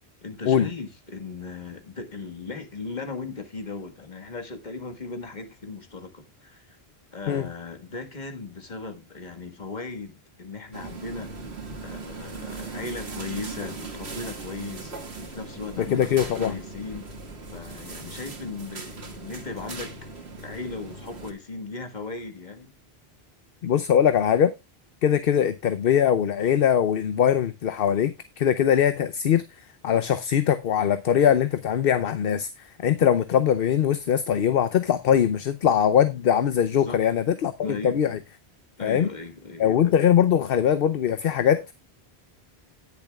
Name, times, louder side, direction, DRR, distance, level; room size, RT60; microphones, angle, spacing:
voice 1, 0.2-6.8 7.1-11.3 11.8-17.1 17.5-20.0 20.4-22.7 25.3-25.5 36.7-37.0 37.6-38.2 38.8-39.6, left 3 dB, 45° left, 1.7 m, -37 dB
sound 1, 10.7-21.3, right 3 dB, 85° right, 2.0 m, -39 dB
voice 2, 15.8-16.6 23.6-24.5 25.0-29.4 29.8-32.5 32.8-38.2 38.8-39.1 39.6-41.7, left 9 dB, 65° left, 0.9 m, -21 dB
18.0 x 7.1 x 2.3 m
omnidirectional pair, 1.1 m